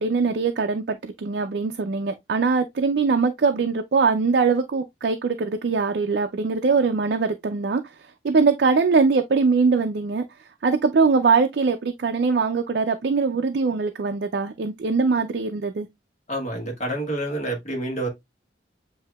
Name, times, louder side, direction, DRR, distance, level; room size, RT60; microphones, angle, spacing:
voice 1, 0.0-7.8 8.2-10.2 10.6-15.9, right 4 dB, 60° right, 0.4 m, -22 dB
voice 2, 16.3-18.1, right 1 dB, 40° left, 1.4 m, -28 dB
7.6 x 2.7 x 2.2 m
head